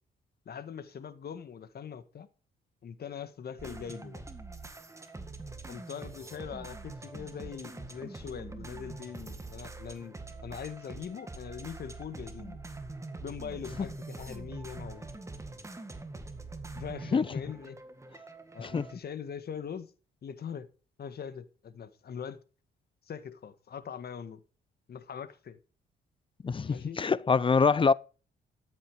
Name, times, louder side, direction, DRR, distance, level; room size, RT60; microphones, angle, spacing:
voice 1, 0.4-2.3 2.8-4.2 5.7-12.6 13.2-15.1 16.7-17.8 18.5-19.9 20.2-20.7 21.0-22.4 23.0-24.4 24.9-25.6 26.6-27.1, left 7 dB, 50° left, 1.6 m, -42 dB
sound 1, 3.6-19.0, right 3 dB, 15° right, 1.9 m, -44 dB
voice 2, 26.4-27.9, left 5 dB, 25° left, 0.5 m, -25 dB
13.0 x 8.5 x 4.8 m
cardioid pair, 90°, 20 cm